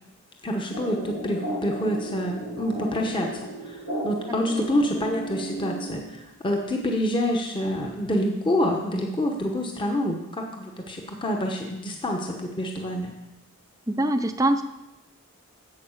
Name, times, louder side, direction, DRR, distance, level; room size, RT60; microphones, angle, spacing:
voice 1, 0.4-13.1, equal, 20° left, 2 dB, 1.0 m, -27 dB
sound 1, 0.7-6.2, right 1 dB, 90° left, 4.9 m, -35 dB
voice 2, 13.9-14.6, right 1 dB, 15° right, 8 dB, 0.5 m, -23 dB
8.5 x 7.8 x 6.5 m, 0.94 s
head